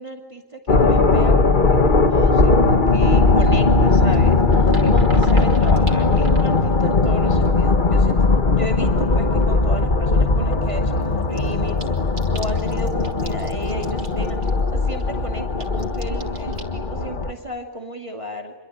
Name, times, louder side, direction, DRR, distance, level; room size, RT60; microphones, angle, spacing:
voice 1, 0.0-11.8 12.3-14.4 14.7-18.5, equal, 25° right, 3 dB, 2.4 m, -34 dB
sound 1, 0.7-17.3, left 3 dB, 40° left, 1.7 m, -18 dB
sound 2, 3.3-8.5 8.8-9.4 9.7-9.8 10.1-10.2 10.3-16.6, right 2 dB, 60° right, 3.1 m, -35 dB
27.5 x 23.5 x 9.1 m, 1.1 s
omnidirectional pair, 1.3 m